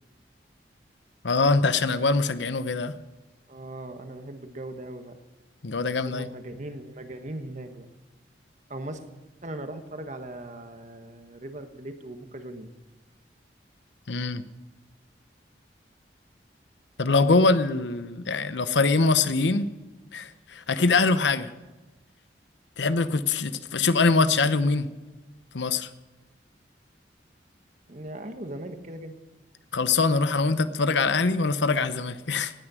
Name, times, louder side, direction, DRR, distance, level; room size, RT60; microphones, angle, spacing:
voice 1, 1.2-3.0 5.6-6.3 14.1-14.4 17.0-19.7 20.1-21.5 22.8-24.9 25.5-25.9 29.7-32.5, left 3 dB, 85° left, 13 dB, 0.8 m, -23 dB
voice 2, 3.5-5.2 6.0-7.9 8.7-9.0 9.4-12.7 27.9-29.1, right 1 dB, 45° right, 7 dB, 1.3 m, -39 dB
18.0 x 9.9 x 6.2 m, 1.2 s
head